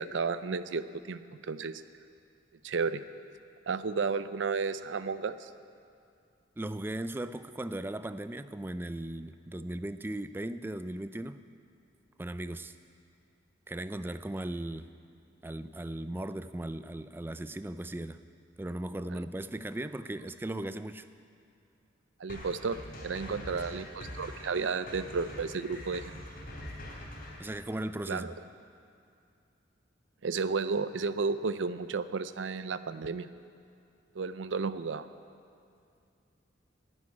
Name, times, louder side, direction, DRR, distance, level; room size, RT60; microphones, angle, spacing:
voice 1, 0.0-1.8 2.6-3.0 3.7-5.5 22.2-26.2 28.1-28.3 30.2-33.3 34.1-35.1, right 4 dB, 75° right, 13 dB, 0.5 m, -33 dB
voice 2, 6.6-11.4 12.2-12.7 13.7-14.9 15.4-18.2 18.6-21.1 23.2-23.8 27.4-28.3, right 1 dB, 10° right, 12 dB, 0.3 m, -37 dB
sound 1, 22.3-27.5, left 1 dB, 50° left, 3.6 m, -44 dB
11.0 x 9.8 x 9.6 m, 2.4 s
head